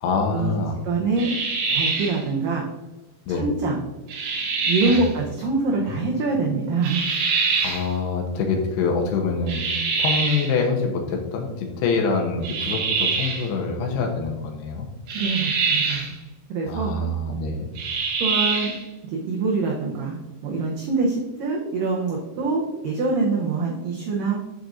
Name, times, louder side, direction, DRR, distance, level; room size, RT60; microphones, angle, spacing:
voice 1, 0.0-0.8 3.3-3.5 4.9-5.0 5.8-6.0 7.6-9.6 10.0-14.9 16.7-17.7, left 4 dB, 75° left, 2 dB, 2.8 m, -25 dB
voice 2, 0.8-1.3 1.7-2.6 3.3-3.8 4.7-7.0 15.1-16.1 16.5-16.9 18.2-18.7 19.1-24.4, right 3 dB, 85° right, -1 dB, 1.9 m, -24 dB
sound 1, 1.2-2.2 4.1-5.1 6.8-7.9 9.5-10.6 12.4-13.5 15.1-16.1 17.8-18.8, right 4 dB, 70° right, 2.3 m, -24 dB
8.3 x 7.5 x 2.5 m, 1.1 s
omnidirectional pair, 5.1 m